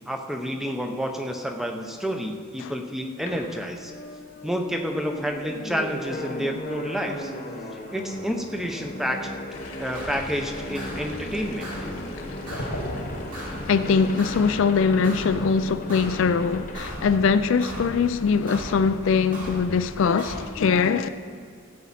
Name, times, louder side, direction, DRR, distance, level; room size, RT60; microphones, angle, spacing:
voice 1, 0.1-3.9 4.4-7.3 7.9-9.3 9.8-11.7, equal, ahead, 0.7 m, -29 dB
sound 1, 3.3-17.8, left 1 dB, 35° left, 1.1 m, -37 dB
sound 2, 9.5-14.6, left 1 dB, 85° left, 1.5 m, -39 dB
sound 3, 9.9-10.3 10.7-11.2 11.6-12.0 12.5-12.9 13.3-13.7 14.2-14.6 15.0-15.5 15.9-16.3 16.7-17.2 17.6-18.0 18.5-18.9 19.3-19.7 20.2-20.5, equal, 40° right, 2.3 m, -37 dB
voice 2, 13.7-21.1, left 5 dB, 65° left, 0.4 m, -22 dB
15.5 x 8.5 x 4.2 m
head